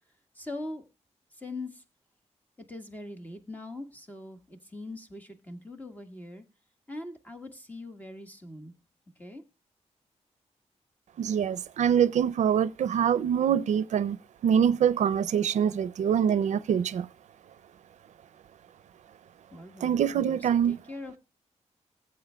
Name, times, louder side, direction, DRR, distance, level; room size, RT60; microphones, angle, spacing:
voice 1, 0.3-0.8 1.3-1.8 2.7-6.4 6.9-8.7 9.2-9.4 19.5-21.2, left 2 dB, 15° left, 1.5 m, -42 dB
voice 2, 11.2-14.2 14.4-17.1 19.8-20.8, right 8 dB, 85° right, 0.4 m, -24 dB
19.0 x 7.8 x 2.2 m
wide cardioid pair, 145°, 12 cm